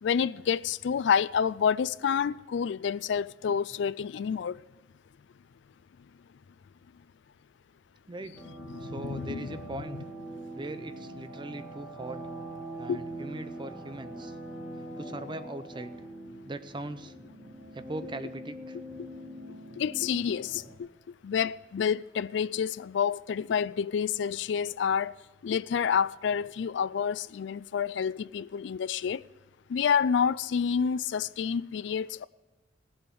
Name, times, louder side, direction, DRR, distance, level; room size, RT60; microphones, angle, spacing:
voice 1, 0.0-4.6 8.7-9.5 12.9-13.0 19.8-20.9 21.2-25.1 25.4-29.2 29.7-32.3, left 7 dB, 70° left, 0.4 m, -28 dB
sound 1, 8.4-20.7, right 1 dB, ahead, 2.8 m, -43 dB
voice 2, 8.8-10.0 10.5-12.3 12.8-14.4 14.8-15.9 16.5-17.1 17.7-18.8, right 2 dB, 25° right, 0.6 m, -40 dB
17.5 x 7.8 x 7.0 m
head